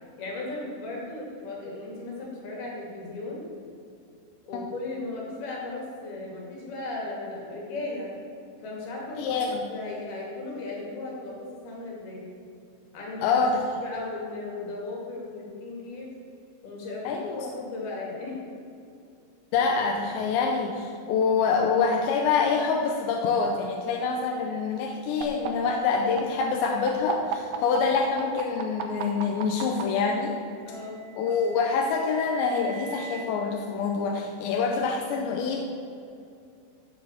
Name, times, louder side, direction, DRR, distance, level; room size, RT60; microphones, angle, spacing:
voice 1, 0.2-3.5 4.4-8.1 8.6-9.3 9.7-12.3 12.9-13.4 13.8-16.1 16.6-18.4 30.7-31.1, left 2 dB, 55° left, -2 dB, 4.0 m, -36 dB
voice 2, 9.2-9.7 13.2-13.8 17.1-17.5 19.5-30.4 31.2-35.6, left 5 dB, 80° left, 1 dB, 2.8 m, -26 dB
sound 1, 25.2-29.8 31.0-33.2, right 12 dB, 90° right, 2.1 m, -35 dB
13.0 x 5.1 x 7.9 m, 2.5 s
omnidirectional pair, 5.6 m